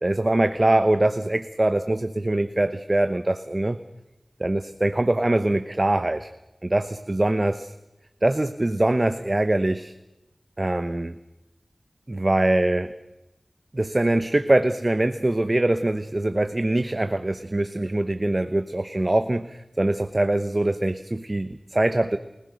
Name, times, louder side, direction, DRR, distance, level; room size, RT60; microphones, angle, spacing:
voice 1, 0.0-3.8 4.4-6.3 6.6-7.7 8.2-9.9 10.6-11.2 12.1-12.9 13.7-22.2, right 1 dB, 40° right, 9 dB, 1.0 m, -23 dB
29.5 x 16.5 x 6.6 m, 0.96 s
wide cardioid pair, 50°, 0 cm